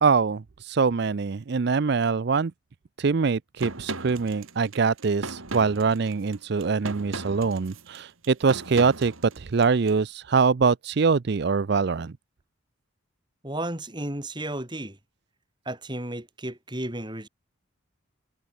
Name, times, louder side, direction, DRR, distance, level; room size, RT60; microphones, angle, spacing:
voice 1, 0.0-2.5 3.0-12.1, right 5 dB, 55° right, 0.5 m, -23 dB
sound 1, 3.6-9.9, right 2 dB, 85° right, 3.7 m, -37 dB
voice 2, 13.4-15.0 15.7-17.3, right 1 dB, 20° right, 3.4 m, -33 dB
head